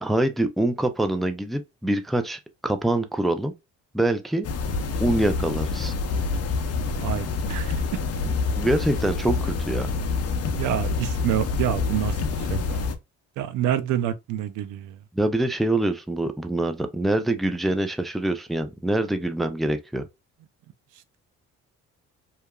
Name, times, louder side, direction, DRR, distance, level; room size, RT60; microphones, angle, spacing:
voice 1, 0.0-3.5 3.9-4.5 5.0-5.9 8.6-9.9 15.1-20.1, right 1 dB, ahead, 0.3 m, -25 dB
sound 1, 4.4-12.9, left 4 dB, 55° left, 0.6 m, -27 dB
voice 2, 7.0-7.8 10.4-12.9 13.4-15.0, right 11 dB, 85° right, 0.5 m, -28 dB
2.8 x 2.4 x 2.2 m
cardioid pair, 90°, 30 cm